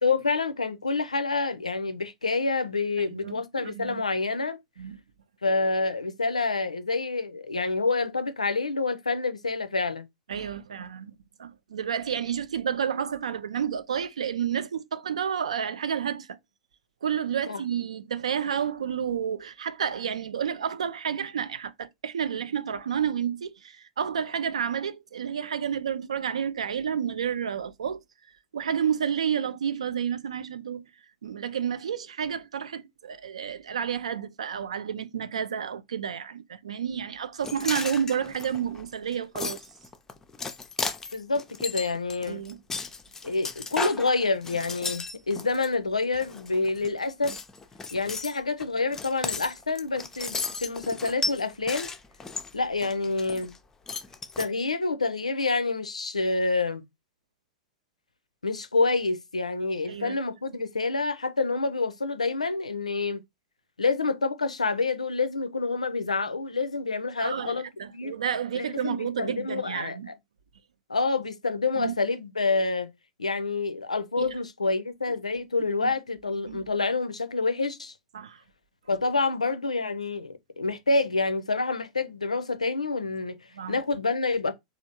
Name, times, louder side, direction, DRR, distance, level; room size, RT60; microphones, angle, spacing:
voice 1, 0.0-4.6 5.4-10.1 17.5-17.6 41.1-42.4 43.2-47.3 47.9-51.9 52.5-53.5 54.4-56.8 58.4-63.2 63.8-68.1 68.5-70.1 70.9-72.9 73.2-77.9 78.9-83.4 83.7-84.5, left 3 dB, 85° left, 0.4 m, -27 dB
voice 2, 3.1-4.0 4.8-5.0 10.3-11.1 11.4-16.4 17.0-28.0 28.5-30.8 31.2-39.7 42.3-42.6 59.9-60.2 67.2-70.1 71.7-71.9 74.2-74.3 75.6-75.9 76.5-76.7 78.1-78.4 83.5-83.8, right 8 dB, 70° right, 0.3 m, -30 dB
sound 1, 37.4-45.7 46.1-46.9 47.2-53.6 53.9-54.5, left 4 dB, 15° left, 0.4 m, -35 dB
3.2 x 2.4 x 2.8 m
figure-of-eight pair, 90°, 3 cm